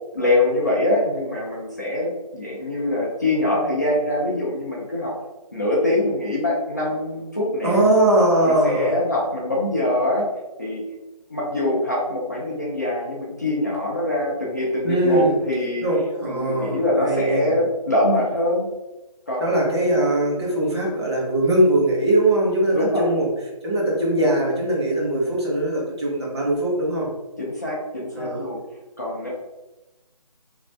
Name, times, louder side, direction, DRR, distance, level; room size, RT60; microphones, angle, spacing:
voice 1, 0.1-5.1 5.5-7.8 8.4-10.3 10.6-10.8 11.3-15.8 16.2-18.7 19.3-19.6 22.7-23.1 27.4-28.6 29.0-29.3, left 1 dB, 25° left, -4 dB, 0.4 m, -23 dB
voice 2, 7.6-9.0 14.8-15.4 15.8-17.5 19.4-23.3 23.6-27.1 28.1-28.4, right 1 dB, 40° right, -3 dB, 1.0 m, -21 dB
2.5 x 2.4 x 3.2 m, 1.0 s
figure-of-eight pair, 160°, 20 cm